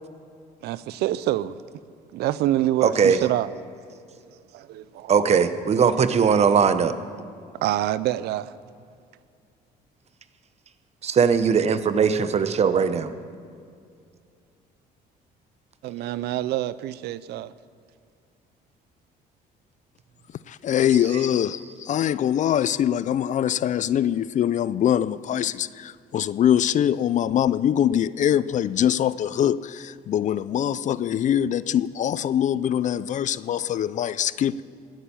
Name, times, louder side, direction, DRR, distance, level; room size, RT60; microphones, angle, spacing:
voice 1, 0.6-1.6 2.1-3.5 4.5-5.1 7.6-8.5 15.8-17.5, right 14 dB, 75° right, 0.5 m, -26 dB
voice 2, 2.8-3.2 5.1-6.9 11.0-13.1, right 6 dB, 40° right, 0.9 m, -20 dB
voice 3, 20.5-34.6, left 10 dB, 45° left, 0.4 m, -23 dB
19.5 x 9.1 x 7.1 m
cardioid pair, 110°, 17 cm